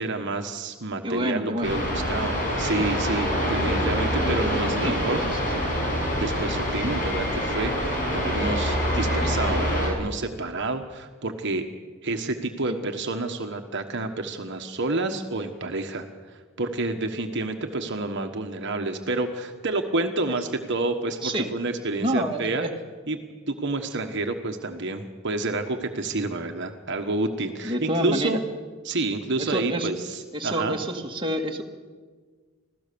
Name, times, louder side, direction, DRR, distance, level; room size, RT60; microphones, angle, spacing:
voice 1, 0.0-5.2 6.2-11.7 12.0-22.6 23.1-23.2 23.5-28.4 28.8-30.8, right 2 dB, 55° right, 5 dB, 1.3 m, -29 dB
voice 2, 1.0-1.7 4.8-5.0 5.3-5.4 12.7-12.8 21.2-21.5 22.0-22.7 27.6-28.4 29.4-29.9 30.3-31.6, equal, 25° right, 1 dB, 1.8 m, -27 dB
sound 1, 1.6-9.9, equal, 40° left, 6.4 m, -25 dB
25.5 x 16.5 x 6.9 m, 1.5 s
head